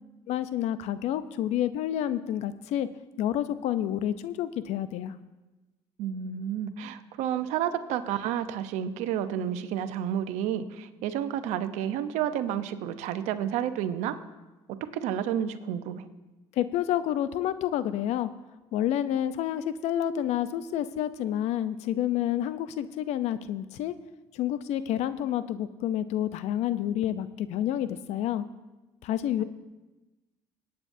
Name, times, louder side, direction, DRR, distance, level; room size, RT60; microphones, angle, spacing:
voice 1, 0.3-2.9 3.2-5.1 16.5-18.3 18.7-23.9 24.3-28.5 29.0-29.4, left 11 dB, 70° left, 13 dB, 0.7 m, -29 dB
voice 2, 6.0-14.2 14.9-16.1, right 10 dB, 75° right, 10 dB, 0.8 m, -30 dB
22.5 x 9.0 x 2.7 m, 1.1 s
supercardioid pair, 70°, 12 cm